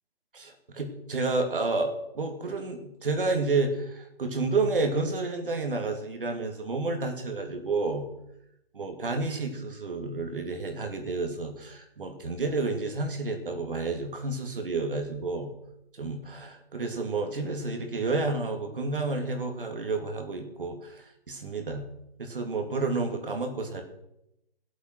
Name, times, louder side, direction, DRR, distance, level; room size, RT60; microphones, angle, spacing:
voice 1, 0.3-8.1 8.7-15.5 16.0-21.9 22.2-23.8, right 3 dB, 60° right, 4 dB, 2.7 m, -30 dB
15.5 x 8.1 x 6.1 m, 0.83 s
hypercardioid pair, 175°, 31 cm